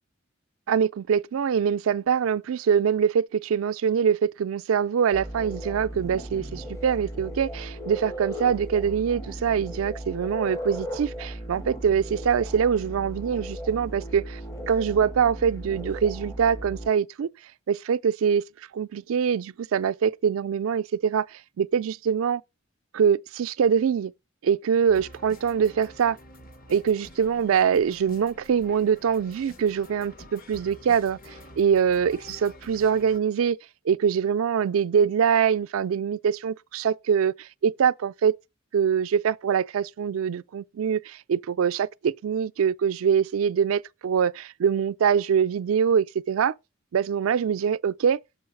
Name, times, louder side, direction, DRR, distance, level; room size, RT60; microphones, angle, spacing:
voice 1, 0.7-14.4 14.7-17.3 17.7-18.4 18.7-22.4 22.9-24.1 24.4-26.2 26.7-33.6 33.9-38.4 38.7-46.5 46.9-48.2, right 7 dB, 85° right, 0.4 m, -24 dB
sound 1, 5.1-16.9, equal, 15° left, 0.7 m, -36 dB
sound 2, 24.9-33.2, left 1 dB, 45° left, 1.1 m, -48 dB
7.0 x 4.6 x 5.7 m
head